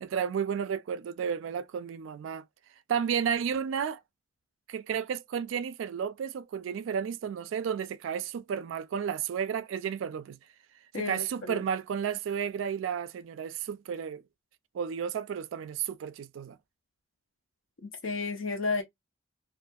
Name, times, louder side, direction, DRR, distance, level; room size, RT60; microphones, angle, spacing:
voice 1, 0.0-2.4 2.9-4.0 4.7-10.4 10.9-14.2 14.7-16.6, right 7 dB, 85° right, 0.3 m, -32 dB
voice 2, 10.9-11.6 17.8-18.8, left 3 dB, 85° left, 0.6 m, -32 dB
2.4 x 2.3 x 2.5 m
head